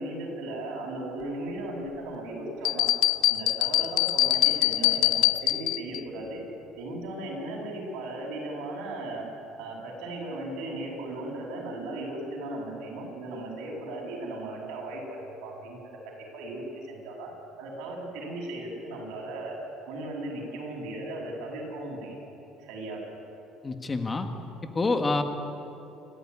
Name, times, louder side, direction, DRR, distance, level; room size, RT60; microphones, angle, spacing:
voice 1, 0.0-2.9 3.3-6.4 6.8-9.2 9.6-15.8 16.0-17.3 17.6-19.6 19.9-22.1 22.6-23.0, right 2 dB, 80° right, -1 dB, 7.9 m, -36 dB
sound 1, 2.6-6.0, left 15 dB, 70° left, 0.6 m, -24 dB
voice 2, 23.6-24.3 24.7-25.2, left 3 dB, 20° left, 6 dB, 1.6 m, -26 dB
28.0 x 14.5 x 9.9 m, 2.9 s
cardioid pair, 135°, 0 cm